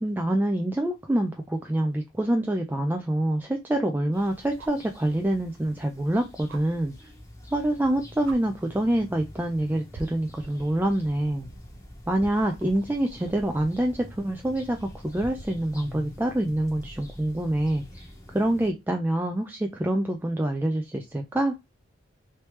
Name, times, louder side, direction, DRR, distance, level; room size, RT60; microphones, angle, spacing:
voice 1, 0.0-6.9 7.5-11.5 12.1-18.0 18.3-21.5, right 1 dB, 10° right, 3 dB, 0.3 m, -26 dB
sound 1, 2.4-2.5 4.6-4.9 6.5-6.6 7.8-7.9 8.2-8.4 9.3-9.6 9.9-15.6 17.3-17.4, right 2 dB, 80° right, 0.5 m, -46 dB
sound 2, 4.1-18.7, left 1 dB, 15° left, 0.9 m, -46 dB
3.2 x 3.1 x 3.0 m, 0.22 s
head